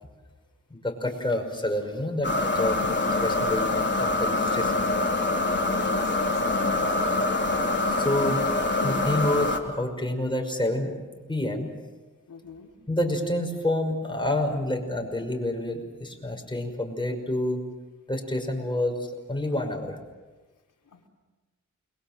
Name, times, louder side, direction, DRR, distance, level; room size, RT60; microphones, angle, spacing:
voice 1, 0.7-4.9 7.7-11.0 11.3-11.7 12.9-17.6 18.1-19.0 19.3-20.0, left 1 dB, 15° left, 3 dB, 5.7 m, -28 dB
sound 1, 2.2-9.6, left 2 dB, 35° left, 3.6 m, -25 dB
voice 2, 5.8-7.0 12.3-12.7 20.9-21.1, left 5 dB, 80° left, 1 dB, 3.5 m, -43 dB
29.5 x 22.5 x 7.6 m, 1.2 s
cardioid pair, 75°, 31 cm